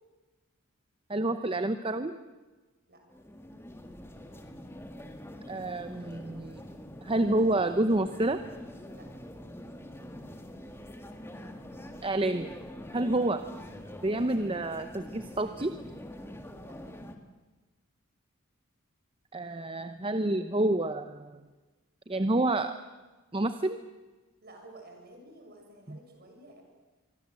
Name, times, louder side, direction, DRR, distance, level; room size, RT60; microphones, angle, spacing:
voice 1, 1.1-2.2 5.5-6.6 7.0-8.4 12.0-12.5 12.9-13.5 14.0-15.7 19.3-21.4 22.1-22.8 23.3-23.8 25.9-26.0, right 2 dB, 25° right, 10 dB, 0.8 m, -28 dB
sound 1, 3.1-17.2, equal, 10° left, 1.8 m, -45 dB
voice 2, 24.4-26.6, right 1 dB, 50° right, 3 dB, 6.8 m, -52 dB
25.0 x 23.5 x 7.7 m, 1.2 s
head